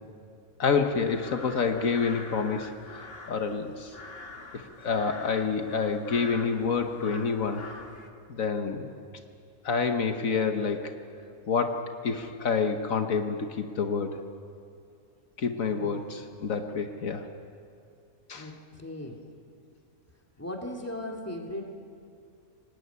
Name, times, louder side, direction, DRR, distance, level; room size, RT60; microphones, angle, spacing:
voice 1, 0.6-2.7 2.9-3.9 4.8-7.6 8.3-8.9 9.7-10.9 11.5-14.1 15.4-17.2 18.3-18.4, left 5 dB, 75° left, 6 dB, 1.6 m, -28 dB
sound 1, 1.0-8.1, left 2 dB, 45° left, 1.8 m, -45 dB
voice 2, 18.3-19.2 20.4-21.7, left 1 dB, 10° left, 1 dB, 2.7 m, -38 dB
24.5 x 19.0 x 9.6 m, 2.4 s
omnidirectional pair, 1.4 m